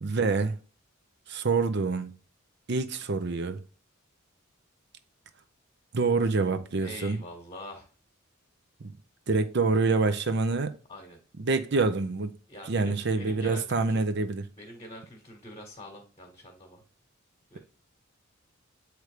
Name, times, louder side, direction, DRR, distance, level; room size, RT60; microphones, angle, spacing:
voice 1, 0.0-0.6 1.3-2.1 2.7-3.6 5.9-7.2 9.3-10.7 11.4-12.3 12.7-14.4, right 3 dB, 55° right, 0.6 m, -26 dB
voice 2, 6.8-7.9 10.9-11.2 12.5-14.0 14.5-16.8 17.5-17.6, left 1 dB, 25° left, 1.2 m, -45 dB
7.9 x 3.2 x 4.9 m
head